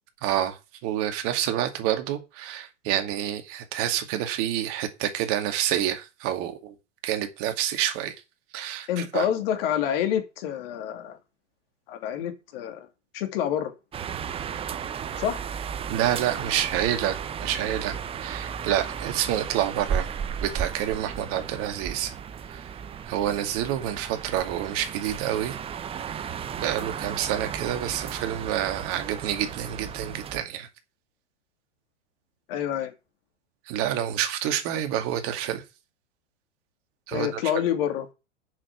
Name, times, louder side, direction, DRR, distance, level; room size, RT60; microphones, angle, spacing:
voice 1, 0.2-6.7 7.0-8.2 8.5-9.3 15.9-20.1 20.4-22.1 22.5-22.6 23.1-25.6 26.6-30.7 33.7-35.6 37.1-37.4, right 11 dB, 40° right, 2.2 m, -28 dB
voice 2, 8.9-11.2 11.9-12.9 13.1-13.7 15.2-15.4 32.5-32.9 37.1-38.1, left 10 dB, 50° left, 2.8 m, -27 dB
sound 1, 13.9-30.4, right 7 dB, 15° right, 0.7 m, -34 dB
7.4 x 7.1 x 8.0 m
hypercardioid pair, 110°, 36 cm